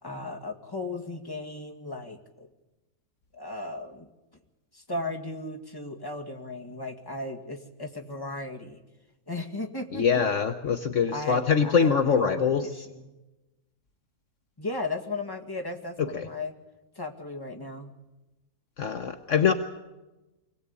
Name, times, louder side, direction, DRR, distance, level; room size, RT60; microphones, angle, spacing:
voice 1, 0.0-2.5 3.3-4.1 4.7-8.8 9.3-10.2 11.1-13.1 14.6-16.5 17.0-17.9, left 2 dB, 15° left, 3 dB, 2.1 m, -36 dB
voice 2, 9.9-12.7 16.1-16.3 18.8-19.5, left 6 dB, 60° left, 8 dB, 1.3 m, -24 dB
25.0 x 18.5 x 8.4 m, 1.1 s
omnidirectional pair, 1.5 m